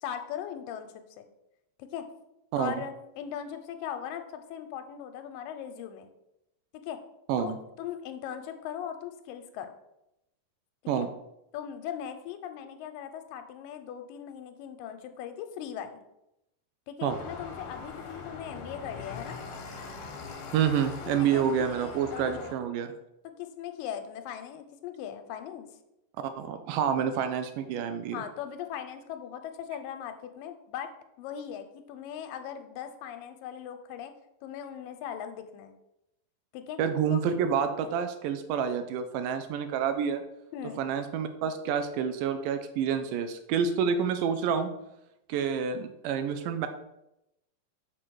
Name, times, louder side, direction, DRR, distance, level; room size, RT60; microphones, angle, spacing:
voice 1, 0.0-1.3 1.8-2.1 2.6-6.1 6.7-7.0 7.4-9.7 11.0-11.1 11.5-16.0 16.9-19.4 21.0-22.6 23.4-25.7 28.1-30.9 31.2-34.1 34.4-35.7 36.5-36.8 37.1-37.2 40.5-40.8, left 9 dB, 85° left, 8 dB, 2.2 m, -39 dB
sound 1, 17.1-22.5, left 4 dB, 65° left, 2.1 m, -41 dB
voice 2, 20.5-22.9 26.4-28.2 36.8-40.2 40.8-44.7 45.3-46.7, right 7 dB, 80° right, 8 dB, 2.0 m, -28 dB
6.5 x 3.8 x 6.2 m, 0.87 s
omnidirectional pair, 4.0 m